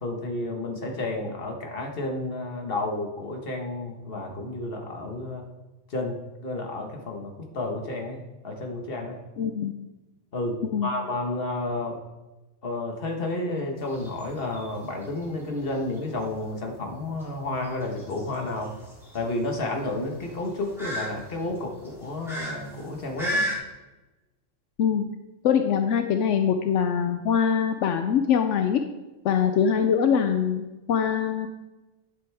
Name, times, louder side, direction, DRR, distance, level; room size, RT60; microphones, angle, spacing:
voice 1, 0.0-5.5 5.9-9.2 10.3-12.0 12.6-18.7 19.1-23.4, left 2 dB, 50° left, 2 dB, 1.6 m, -31 dB
voice 2, 9.4-9.7 10.6-10.9 24.8-25.1 25.4-28.8 29.2-31.5, left 7 dB, 80° left, 7 dB, 1.0 m, -23 dB
sound 1, 13.8-23.6, equal, ahead, 3.1 m, -36 dB
11.0 x 7.7 x 3.5 m, 1.1 s
omnidirectional pair, 1.2 m